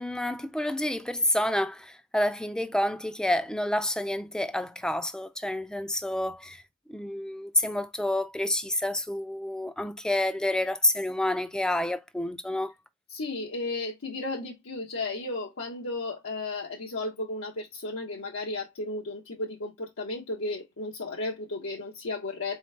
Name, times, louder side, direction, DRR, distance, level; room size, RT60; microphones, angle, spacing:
voice 1, 0.0-6.6 6.9-12.7, left 1 dB, 5° left, 0.4 m, -29 dB
voice 2, 13.1-22.6, left 2 dB, 85° left, 0.9 m, -34 dB
4.1 x 3.1 x 3.2 m
head